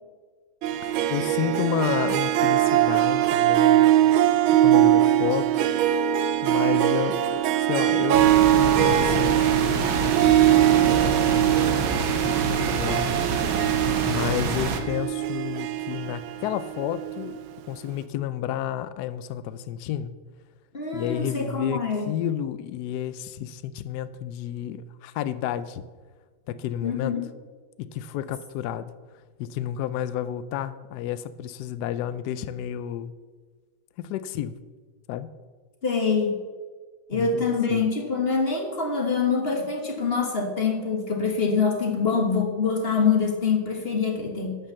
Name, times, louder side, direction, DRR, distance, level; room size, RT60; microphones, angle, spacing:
Harp, 0.6-17.4, right 12 dB, 85° right, 1.5 m, -22 dB
voice 1, 0.8-3.9 4.2-5.5 6.4-8.2 8.5-13.1 14.1-17.4 17.7-20.1 20.9-25.8 26.5-27.2 27.8-28.9 29.4-33.1 34.0-34.6 35.1-35.3 37.1-37.9, left 10 dB, 75° left, 13 dB, 0.9 m, -31 dB
sound 1, 8.1-14.8, right 4 dB, 65° right, 1.6 m, -27 dB
voice 2, 20.7-22.1 26.8-27.3 35.8-36.3 37.1-44.6, left 5 dB, 35° left, 2 dB, 1.5 m, -25 dB
12.0 x 5.5 x 7.2 m, 1.5 s
omnidirectional pair, 2.2 m